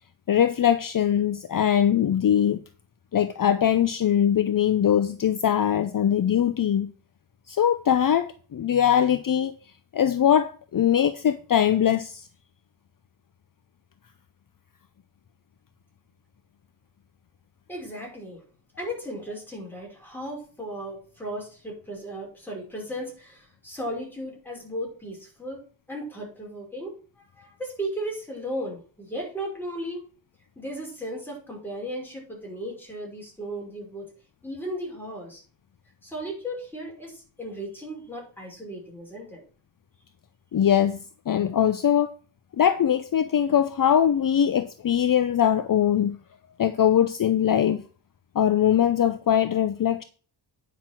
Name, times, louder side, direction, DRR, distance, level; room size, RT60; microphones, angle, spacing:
voice 1, 0.3-2.6 3.1-6.9 7.5-9.5 9.9-12.3 40.5-41.0 41.3-42.1 42.6-46.2 46.6-47.8 48.3-50.0, left 9 dB, 50° left, 0.6 m, -21 dB
voice 2, 17.7-18.4 18.8-25.6 25.9-26.9 27.4-30.1 30.6-34.1 34.4-35.4 36.0-39.4, equal, 5° left, 5.5 m, -35 dB
9.4 x 5.9 x 6.0 m
wide cardioid pair, 110°, 43 cm